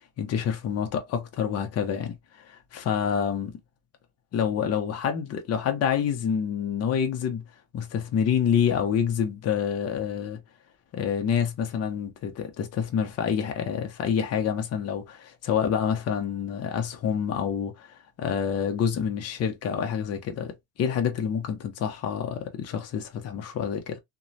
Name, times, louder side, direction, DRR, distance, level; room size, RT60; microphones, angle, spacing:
voice 1, 0.2-3.5 4.3-7.4 7.7-10.4 10.9-17.9 18.2-20.5 20.8-24.0, left 8 dB, 45° left, 0.7 m, -27 dB
3.0 x 2.2 x 2.6 m
cardioid pair, 145°, 36 cm